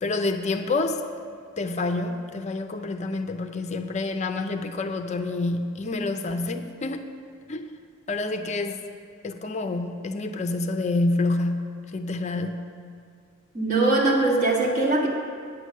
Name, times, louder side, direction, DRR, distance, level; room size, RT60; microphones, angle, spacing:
voice 1, 0.0-1.0 1.6-7.1 7.5-7.7 8.1-8.8 9.2-12.6, left 2 dB, 35° left, 7 dB, 0.5 m, -28 dB
voice 2, 13.5-15.1, right 2 dB, 40° right, -3 dB, 1.6 m, -21 dB
9.1 x 7.9 x 6.3 m, 2.2 s
head